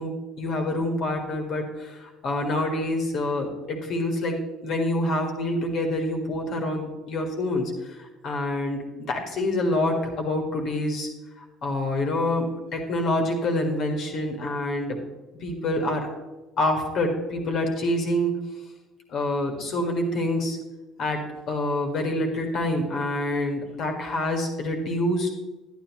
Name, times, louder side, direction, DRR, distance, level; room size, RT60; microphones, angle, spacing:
voice 1, 0.0-11.1 11.6-15.0 15.4-16.1 16.6-18.3 19.1-20.6 21.0-25.3, left 1 dB, 50° left, 2 dB, 1.7 m, -27 dB
11.0 x 9.8 x 3.1 m, 1.1 s
figure-of-eight pair, 55°, 0 cm